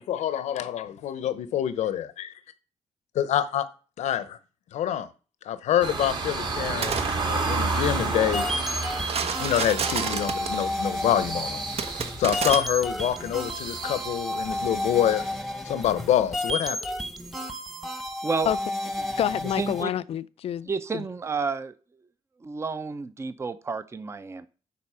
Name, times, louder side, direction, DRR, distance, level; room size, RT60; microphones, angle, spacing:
voice 1, 0.0-2.3 3.1-3.7 4.0-4.4 4.7-5.1 5.4-7.0 7.3-8.4 9.4-11.6 12.2-15.2 15.6-16.8, left 10 dB, 90° left, 0.8 m, -26 dB
sound 1, 5.8-15.4, right 3 dB, 45° right, 2.0 m, -32 dB
sound 2, 6.6-7.1 9.0-10.6 11.8-12.6, right 6 dB, 60° right, 1.0 m, -29 dB
sound 3, 7.8-19.8, left 1 dB, ahead, 1.0 m, -32 dB
voice 2, 19.0-21.0, left 10 dB, 60° left, 0.4 m, -28 dB
voice 3, 19.6-19.9 20.7-21.7 22.4-24.5, right 4 dB, 25° right, 0.6 m, -30 dB
9.6 x 4.2 x 5.6 m
cardioid pair, 100°, 11 cm